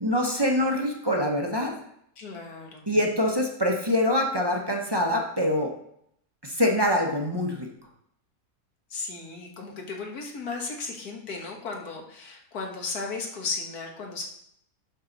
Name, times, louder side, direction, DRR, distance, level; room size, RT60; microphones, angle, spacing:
voice 1, 0.0-1.7 2.9-5.7 6.4-7.7, left 1 dB, 20° right, 0 dB, 0.7 m, -24 dB
voice 2, 2.2-2.9 8.9-14.2, left 4 dB, 70° left, 1 dB, 1.9 m, -35 dB
11.0 x 4.7 x 4.0 m, 0.72 s
omnidirectional pair, 1.7 m